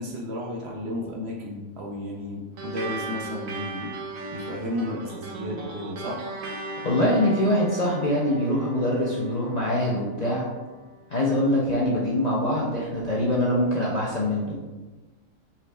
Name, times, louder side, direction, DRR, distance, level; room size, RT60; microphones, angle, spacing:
voice 1, 0.0-4.0 4.3-6.3, left 1 dB, 60° right, -1 dB, 0.8 m, -33 dB
sound 1, 2.6-11.4, right 2 dB, 75° right, 1.2 m, -38 dB
voice 2, 6.8-10.4 11.1-14.6, left 1 dB, 45° left, -5 dB, 0.5 m, -24 dB
5.6 x 3.8 x 2.2 m, 1.2 s
omnidirectional pair, 1.4 m